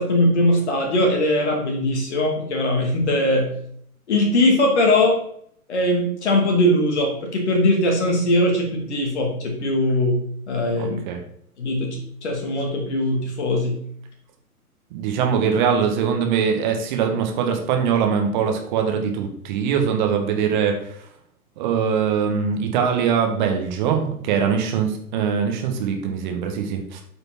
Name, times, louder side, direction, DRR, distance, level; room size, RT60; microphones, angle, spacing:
voice 1, 0.0-3.5 4.1-5.2 5.7-10.2 10.5-11.0 11.6-13.8, left 1 dB, 45° left, 1 dB, 2.7 m, -20 dB
voice 2, 10.8-11.2 14.9-21.0 21.6-27.0, right 7 dB, 30° right, 4 dB, 1.3 m, -22 dB
8.4 x 5.2 x 4.4 m, 0.66 s
figure-of-eight pair, 115°, 45 cm